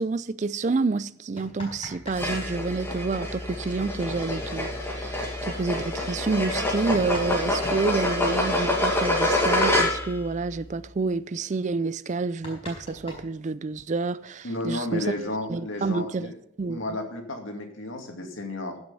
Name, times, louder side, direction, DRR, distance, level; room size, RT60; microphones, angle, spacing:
voice 1, 0.0-15.1 15.5-16.3 16.6-16.8, right 3 dB, 35° right, 0.4 m, -28 dB
sound 1, 1.1-2.2 2.5-2.6 4.3-4.4 4.8-4.9 5.5-5.6 6.4-7.8 9.4-9.5 9.7-10.0 10.3-10.7 11.2-11.3 11.7-11.8 12.1-14.0 14.9-15.7, left 1 dB, 30° left, 4.6 m, -42 dB
sound 2, 2.1-10.2, left 1 dB, 10° left, 1.9 m, -26 dB
voice 2, 14.4-16.4 16.7-18.8, left 1 dB, 70° left, 2.3 m, -32 dB
15.5 x 6.3 x 5.7 m
head